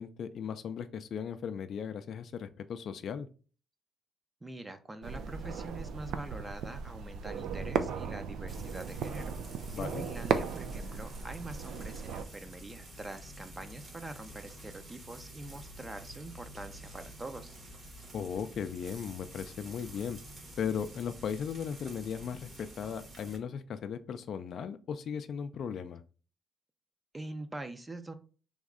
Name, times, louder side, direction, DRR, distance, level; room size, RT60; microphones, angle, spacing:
voice 1, 0.0-3.3 9.7-10.1 18.1-20.2 20.6-26.0, left 7 dB, 65° left, 10 dB, 0.4 m, -37 dB
voice 2, 4.4-9.3 9.8-17.6 27.1-28.1, right 2 dB, 20° right, 8 dB, 0.6 m, -44 dB
sound 1, 5.0-12.2, right 6 dB, 80° right, 0.4 m, -36 dB
Frying (food), 8.5-23.4, right 1 dB, 40° right, 1.6 m, -49 dB
3.5 x 3.1 x 3.7 m, 0.38 s
cardioid pair, 90°, 0 cm